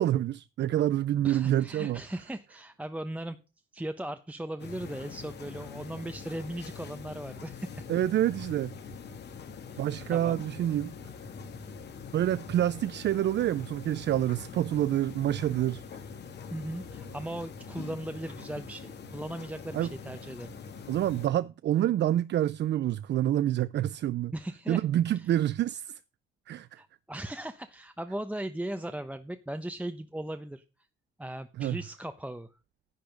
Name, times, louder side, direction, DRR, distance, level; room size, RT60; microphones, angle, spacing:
voice 1, 0.0-2.0 7.9-8.7 9.8-10.9 12.1-15.8 19.7-19.9 20.9-24.3 24.7-26.0 26.5-26.8 31.6-31.8, right 12 dB, 60° right, 0.5 m, -27 dB
voice 2, 1.2-3.4 3.7-7.8 9.7-9.8 10.1-10.4 16.5-20.5 24.3-24.8 25.1-25.3 26.8-30.6 31.2-32.5, right 1 dB, 5° right, 0.9 m, -38 dB
sound 1, 4.6-21.3, left 5 dB, 60° left, 2.4 m, -44 dB
10.5 x 8.4 x 5.2 m
cardioid pair, 90°, 20 cm